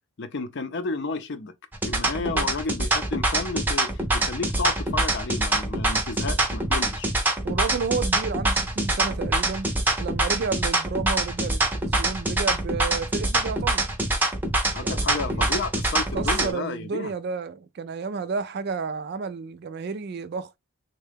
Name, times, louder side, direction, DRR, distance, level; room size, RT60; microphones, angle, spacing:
voice 1, 0.2-1.5 1.9-7.1 14.7-17.1, left 3 dB, 55° left, 0.5 m, -32 dB
sound 1, 1.7-16.5, right 2 dB, 10° right, 0.6 m, -24 dB
voice 2, 7.4-9.7 10.0-13.9 14.8-15.5 16.1-20.5, right 5 dB, 50° right, 0.4 m, -31 dB
3.6 x 2.2 x 3.4 m
head